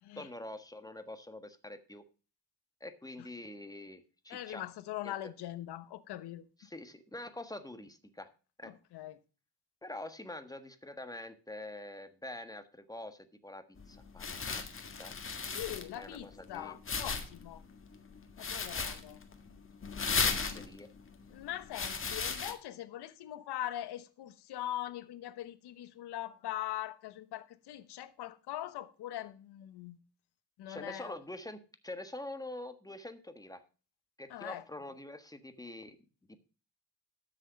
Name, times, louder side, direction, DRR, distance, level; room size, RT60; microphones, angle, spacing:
voice 1, 0.2-2.0 2.8-4.6 5.0-5.1 6.6-8.3 8.6-8.7 9.8-15.1 15.9-16.8 20.0-20.9 30.7-33.6 34.2-36.0 36.3-36.4, left 1 dB, 10° left, 1.4 m, -45 dB
voice 2, 4.3-6.4 8.6-9.2 15.5-17.6 18.4-19.2 21.3-30.0 30.6-31.2 34.3-34.6, left 13 dB, 75° left, 1.1 m, -42 dB
sound 1, 13.8-22.5, left 5 dB, 30° left, 1.7 m, -37 dB
12.5 x 6.6 x 5.2 m
cardioid pair, 90°, 39 cm